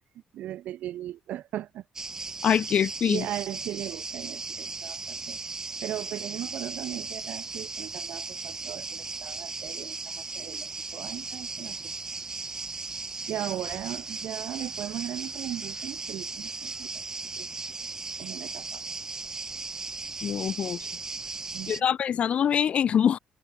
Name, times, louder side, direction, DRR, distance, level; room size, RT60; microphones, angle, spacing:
voice 1, 0.3-1.8 3.1-5.4 5.8-11.9 13.3-16.9 17.4-17.5 18.2-18.8 21.5-21.9, right 13 dB, 80° right, 2.2 m, -37 dB
sound 1, 2.0-21.8, right 3 dB, 25° right, 2.1 m, -37 dB
voice 2, 2.4-3.2 20.2-20.8 21.7-23.2, left 8 dB, 50° left, 0.3 m, -24 dB
open air
cardioid pair, 115°, 3 cm